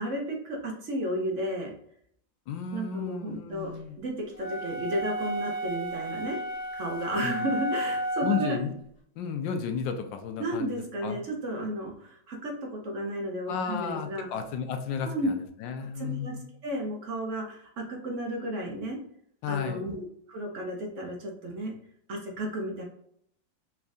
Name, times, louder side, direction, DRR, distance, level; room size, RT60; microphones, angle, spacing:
voice 1, 0.0-1.7 2.7-3.7 4.0-6.4 6.7-8.6 10.4-14.3 15.1-15.3 16.0-16.3 16.6-19.0 19.5-21.7 22.1-22.8, right 1 dB, 60° right, 1 dB, 0.8 m, -33 dB
voice 2, 2.5-4.0 7.2-7.5 8.2-8.7 9.2-11.2 13.5-16.4 19.4-19.9, left 6 dB, 90° left, 7 dB, 1.3 m, -33 dB
sound 1, 4.3-8.6, right 1 dB, 30° left, 0.7 m, -33 dB
4.3 x 3.5 x 2.4 m, 0.68 s
omnidirectional pair, 2.0 m